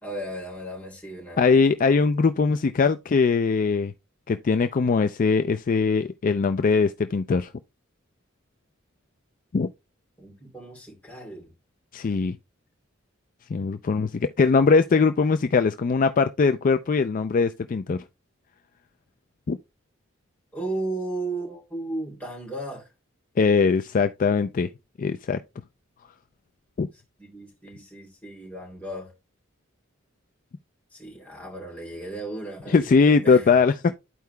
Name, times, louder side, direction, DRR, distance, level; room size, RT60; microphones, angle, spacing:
voice 1, 0.0-1.4 10.2-11.5 20.5-22.9 27.2-29.1 30.9-33.5, right 2 dB, 10° left, 3.0 m, -35 dB
voice 2, 1.4-3.9 4.3-7.5 9.5-9.7 11.9-12.4 13.5-18.0 19.5-19.6 23.4-24.7 25.0-25.4 26.8-26.9 32.7-34.0, left 4 dB, 40° left, 0.4 m, -21 dB
12.5 x 4.7 x 2.2 m
head